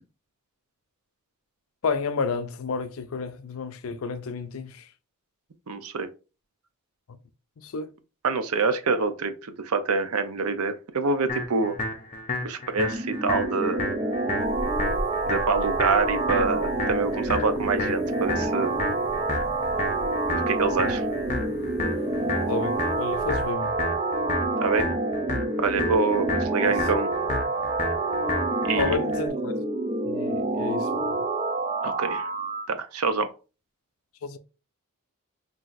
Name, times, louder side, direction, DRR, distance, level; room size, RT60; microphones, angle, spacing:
voice 1, 1.8-4.8 7.6-7.9 22.5-23.7 26.6-26.8 28.8-29.7 30.1-31.2 34.2-34.4, left 4 dB, 65° left, 0.5 m, -31 dB
voice 2, 5.7-6.1 8.2-9.3 9.6-11.8 12.4-13.8 15.3-18.7 20.5-21.0 24.6-24.9 25.6-27.1 28.6-29.0 31.8-32.3 32.7-33.3, right 4 dB, 75° right, 0.6 m, -26 dB
sound 1, 11.3-29.3, left 2 dB, 35° left, 0.8 m, -33 dB
sound 2, 12.7-32.7, right 2 dB, 25° right, 0.5 m, -28 dB
sound 3, 14.4-23.5, equal, 10° left, 0.9 m, -40 dB
5.7 x 2.7 x 2.5 m
head